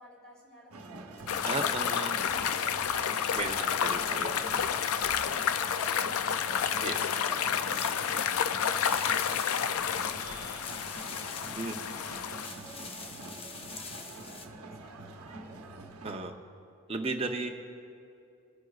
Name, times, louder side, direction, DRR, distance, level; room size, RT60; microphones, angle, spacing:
voice 1, 0.0-15.6, right 1 dB, 5° left, -6 dB, 3.0 m, -52 dB
sound 1, 0.7-16.3, right 2 dB, 80° right, 0.9 m, -46 dB
sound 2, 1.2-2.0 2.3-6.1 6.6-8.5 8.8-10.1 10.6-12.1 12.4-14.5, left 4 dB, 25° left, 0.6 m, -46 dB
sound 3, 1.3-12.5, left 8 dB, 75° left, 0.4 m, -30 dB
voice 2, 1.4-2.1 3.3-4.3 6.8-7.0 11.6-11.8 16.0-16.3 16.9-17.5, right 3 dB, 25° right, 3 dB, 0.7 m, -34 dB
27.5 x 9.7 x 2.4 m, 2.5 s
head